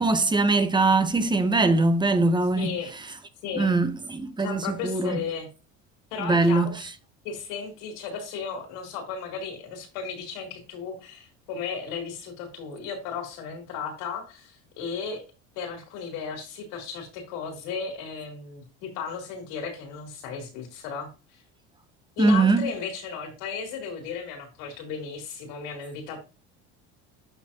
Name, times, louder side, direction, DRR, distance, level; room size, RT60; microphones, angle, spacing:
voice 1, 0.0-2.8 3.5-5.2 6.2-6.7 22.2-22.7, right 3 dB, 15° right, 1.0 m, -22 dB
voice 2, 2.5-2.9 3.4-3.7 4.4-5.5 6.1-6.7 7.2-15.2 15.6-21.4 22.2-26.2, left 6 dB, 80° left, 3.7 m, -35 dB
12.0 x 4.2 x 3.0 m
supercardioid pair, 110°, 33 cm